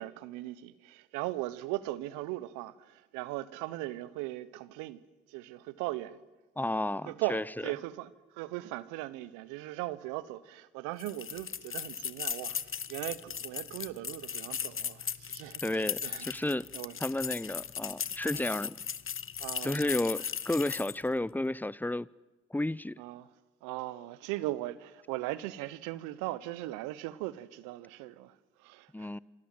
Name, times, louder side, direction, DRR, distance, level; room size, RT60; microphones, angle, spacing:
voice 1, 0.0-5.0 5.3-6.2 7.0-16.3 16.7-17.0 18.3-18.5 19.4-20.0 23.0-23.3 23.6-29.1, right 17 dB, 80° right, 1.2 m, -39 dB
voice 2, 6.6-7.4 15.6-16.7 17.0-18.8 19.6-22.1 22.5-22.9 28.9-29.2, left 1 dB, 5° left, 0.8 m, -32 dB
sound 1, 11.0-21.1, left 7 dB, 45° left, 1.3 m, -37 dB
27.5 x 25.5 x 7.9 m
hypercardioid pair, 45°, 30 cm